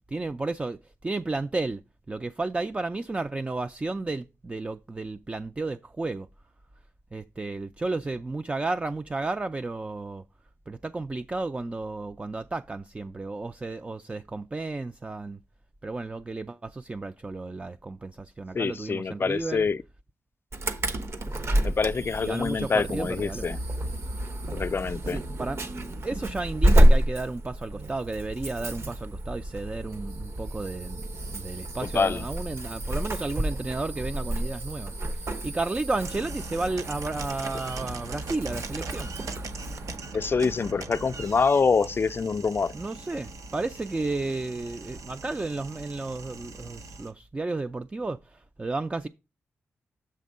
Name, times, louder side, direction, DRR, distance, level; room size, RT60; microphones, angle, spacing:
voice 1, 0.1-1.8 2.1-6.3 7.1-10.2 10.7-15.4 15.8-19.7 22.2-23.5 25.1-25.6 26.0-39.1 42.7-49.1, right 3 dB, 25° right, 0.3 m, -32 dB
voice 2, 18.5-19.8 21.6-23.6 24.5-25.2 31.8-32.3 40.1-42.7, left 5 dB, 45° left, 0.4 m, -25 dB
Insect / Alarm, 20.5-40.0, right 1 dB, 55° right, 1.1 m, -28 dB
sound 1, 36.0-47.1, right 3 dB, 80° right, 0.8 m, -40 dB
7.5 x 3.6 x 5.3 m
cardioid pair, 70°, 5 cm